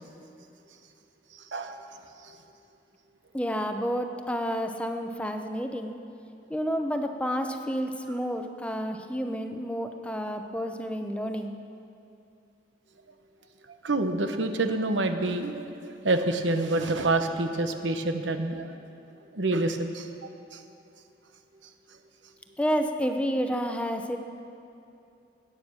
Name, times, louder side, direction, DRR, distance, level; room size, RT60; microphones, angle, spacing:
voice 1, 1.3-1.8 2.2-2.4 13.7-18.7 19.3-20.6, right 2 dB, 90° right, 6 dB, 1.1 m, -28 dB
voice 2, 3.3-6.0 6.5-11.6 22.6-24.2, equal, 5° left, 5 dB, 0.7 m, -30 dB
21.0 x 9.2 x 6.4 m, 2.7 s
head